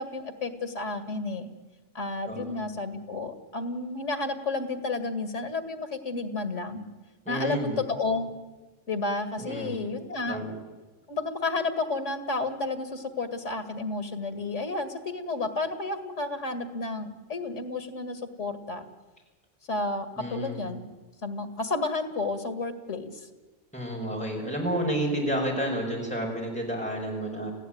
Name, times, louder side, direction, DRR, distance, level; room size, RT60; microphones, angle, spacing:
voice 1, 0.0-1.5 1.9-6.9 7.3-8.3 8.9-10.4 11.1-18.9 19.7-20.9 21.2-23.2, left 3 dB, 85° left, 10 dB, 2.4 m, -31 dB
voice 2, 7.2-7.8 9.4-9.8 10.3-10.5 20.2-20.6 23.7-27.5, right 1 dB, 5° left, -1 dB, 6.2 m, -30 dB
28.5 x 16.0 x 9.4 m, 1.3 s
omnidirectional pair, 1.2 m